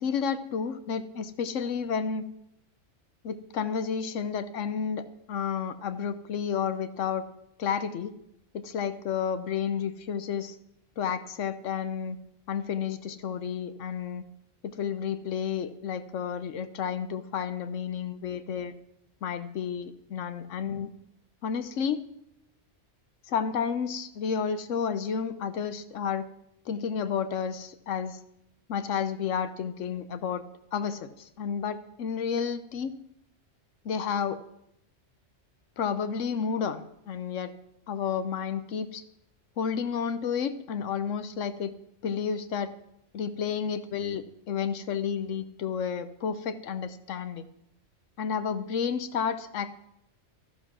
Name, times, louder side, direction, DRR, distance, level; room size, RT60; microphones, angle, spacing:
voice 1, 0.0-2.3 3.2-7.2 7.6-8.1 8.5-10.6 11.0-12.2 12.5-14.2 14.6-18.8 19.2-20.9 21.4-22.0 23.3-26.3 26.7-28.2 28.7-30.4 30.7-32.9 33.8-34.4 35.8-37.5 37.9-39.0 39.6-41.7 42.0-42.7 43.1-47.5 48.2-49.7, left 7 dB, 85° left, 12 dB, 1.1 m, -31 dB
13.5 x 11.0 x 6.0 m, 0.78 s
omnidirectional pair, 1.2 m